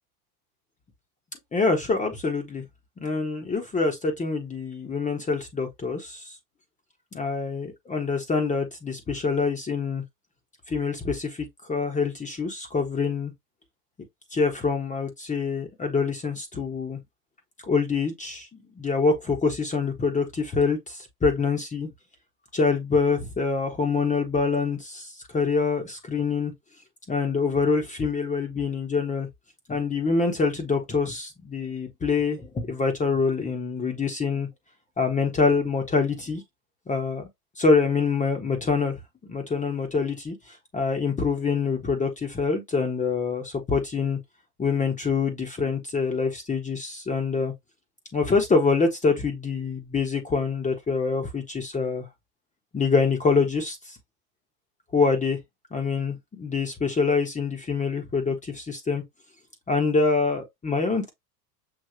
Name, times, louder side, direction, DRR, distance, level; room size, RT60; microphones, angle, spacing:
voice 1, 1.5-2.6 3.0-6.3 7.1-10.0 10.7-13.3 14.3-17.0 17.6-18.5 18.8-21.9 22.5-26.5 27.1-29.3 29.7-34.5 35.0-36.4 36.9-37.2 37.6-39.0 39.3-40.4 40.7-44.2 44.6-47.5 48.1-52.0 52.7-53.8 54.9-55.4 55.7-59.0 59.7-61.1, left 4 dB, 15° left, 1.2 m, -25 dB
6.8 x 2.8 x 2.8 m
hypercardioid pair, 110°, 48 cm